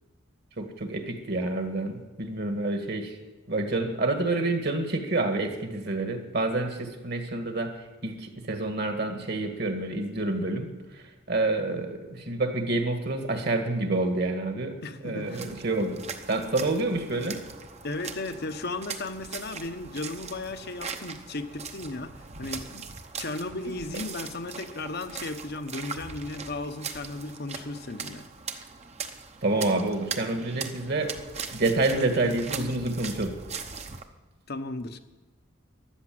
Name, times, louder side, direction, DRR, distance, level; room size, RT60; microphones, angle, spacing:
voice 1, 0.6-3.1 3.5-7.7 8.0-10.7 11.3-14.8 15.0-16.0 16.3-17.4 29.4-31.1 31.5-33.4, right 2 dB, 50° right, 5 dB, 1.9 m, -28 dB
voice 2, 14.8-15.5 17.8-22.1 22.4-22.9 23.2-28.2 34.5-35.0, left 2 dB, 50° left, 9 dB, 1.0 m, -35 dB
sound 1, 15.2-34.0, right 5 dB, 30° right, 0.9 m, -40 dB
13.5 x 11.5 x 7.7 m, 1.2 s
head